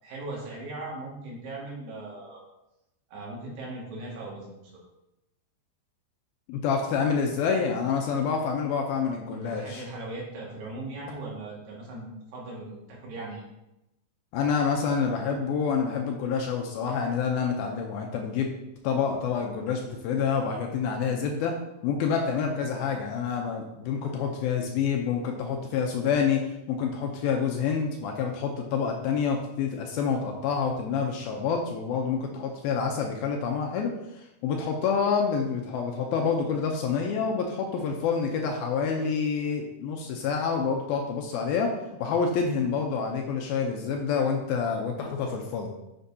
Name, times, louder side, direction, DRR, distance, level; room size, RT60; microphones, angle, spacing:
voice 1, 0.0-2.4 3.1-4.7 9.3-13.4, right 2 dB, 75° right, -4 dB, 3.9 m, -39 dB
voice 2, 6.5-9.8 14.3-18.5 18.8-21.5 21.8-26.4 26.7-41.7 42.0-45.7, left 6 dB, 80° left, 2 dB, 2.3 m, -27 dB
9.6 x 6.8 x 2.8 m, 0.92 s
omnidirectional pair, 4.7 m